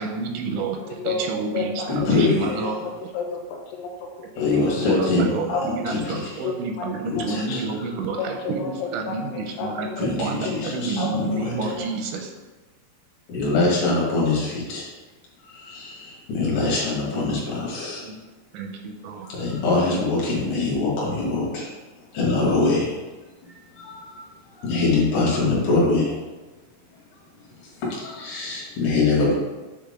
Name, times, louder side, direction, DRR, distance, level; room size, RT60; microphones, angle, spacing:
voice 1, 0.0-1.7 2.1-2.9 4.5-12.3 17.1-17.4 18.0-18.1 18.5-19.3, right 4 dB, 85° right, 3 dB, 2.9 m, -30 dB
voice 2, 0.6-2.1 2.6-4.7 5.5-6.0 6.4-7.7 8.2-10.7 11.0-11.9, left 4 dB, 75° left, 0 dB, 2.7 m, -32 dB
voice 3, 1.9-2.7 4.4-6.4 7.0-7.8 10.0-11.7 13.3-14.9 15.4-18.0 19.2-21.7 22.1-22.9 23.4-24.2 24.6-26.2 27.6-29.3, left 3 dB, 55° left, -5 dB, 2.7 m, -24 dB
7.8 x 3.7 x 3.6 m, 1.2 s
omnidirectional pair, 5.3 m